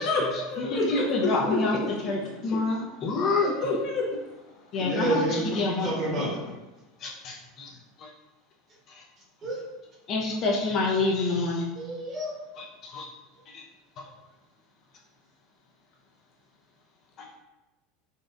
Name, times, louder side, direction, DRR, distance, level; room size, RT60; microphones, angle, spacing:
voice 1, 0.0-1.6 3.6-4.1, left 3 dB, 60° left, -3 dB, 1.0 m, -28 dB
voice 2, 0.7-1.8 2.0-3.5 4.7-5.1 5.5-6.2 7.0-7.7 10.1-11.6 12.9-13.1, left 3 dB, 45° left, -2 dB, 0.6 m, -27 dB
voice 3, 4.8-6.5 9.4-9.6 11.7-12.3, right 1 dB, 35° right, -4 dB, 1.1 m, -29 dB
4.0 x 2.3 x 2.5 m, 1.0 s
supercardioid pair, 120°, 0 cm